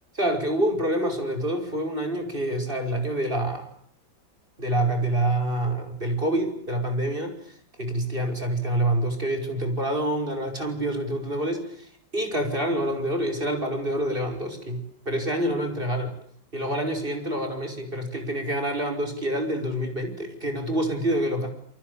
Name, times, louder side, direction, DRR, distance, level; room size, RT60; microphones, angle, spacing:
voice 1, 0.1-3.7 4.6-14.8 15.1-16.1 16.5-21.5, right 1 dB, 25° right, 4 dB, 6.0 m, -27 dB
28.5 x 24.0 x 8.5 m, 0.63 s
omnidirectional pair, 2.0 m